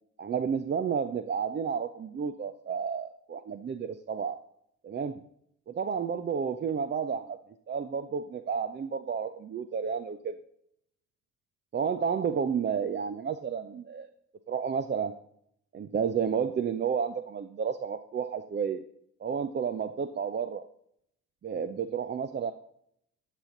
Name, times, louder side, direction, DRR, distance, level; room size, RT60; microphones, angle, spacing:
voice 1, 0.2-4.4 4.8-5.2 5.7-7.4 7.7-10.4 11.7-14.1 14.5-15.1 15.7-18.8 19.2-20.7 21.4-22.5, right 6 dB, 25° right, 9 dB, 0.7 m, -31 dB
13.0 x 7.2 x 4.0 m, 0.70 s
figure-of-eight pair, 50°, 42 cm